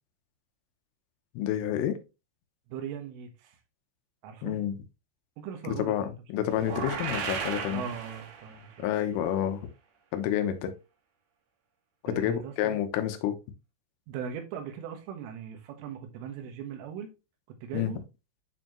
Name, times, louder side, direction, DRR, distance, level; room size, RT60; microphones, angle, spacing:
voice 1, 1.4-2.0 4.4-4.8 5.8-7.8 8.8-9.6 10.1-10.7 12.0-13.4 17.7-17.9, left 10 dB, 85° left, 3.6 m, -29 dB
voice 2, 2.7-3.6 4.2-4.6 5.4-6.5 7.7-8.9 12.1-12.8 14.1-17.1 17.6-18.0, right 8 dB, 85° right, 3.9 m, -39 dB
sound 1, 6.5-8.7, right 6 dB, 65° right, 3.8 m, -35 dB
9.9 x 4.5 x 3.0 m
omnidirectional pair, 5.6 m